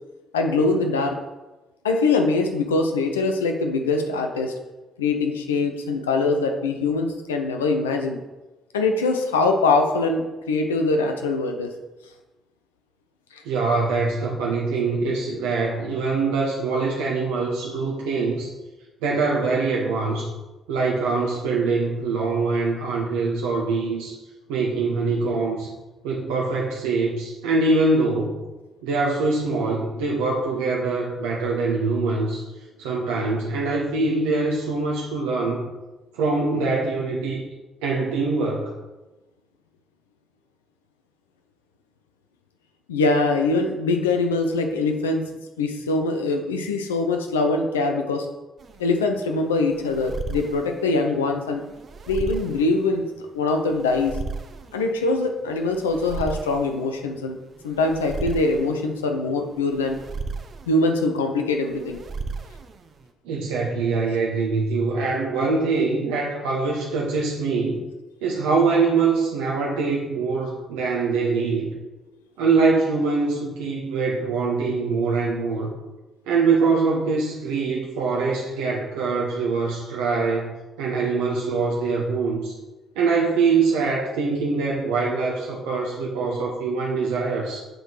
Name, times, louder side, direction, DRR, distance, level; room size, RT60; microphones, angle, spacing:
voice 1, 0.3-1.2 1.8-4.5 5.0-8.2 8.7-11.7 13.3-13.4 42.9-45.2 45.6-48.3 48.8-51.6 52.1-53.1 53.3-54.2 54.7-57.4 57.6-60.0 60.7-62.0, left 3 dB, 80° left, 4 dB, 0.5 m, -23 dB
voice 2, 13.4-18.5 19.0-20.3 20.7-24.2 24.5-25.7 26.0-28.4 28.8-32.5 32.8-35.6 36.1-37.4 37.8-38.7 63.2-67.8 68.2-71.7 72.4-75.7 76.3-82.5 83.0-87.6, right 4 dB, 70° right, -2 dB, 0.9 m, -23 dB
sound 1, 48.6-63.1, right 4 dB, 45° right, 0.7 m, -36 dB
7.9 x 3.9 x 4.6 m, 1.1 s
figure-of-eight pair, 45°, 0 cm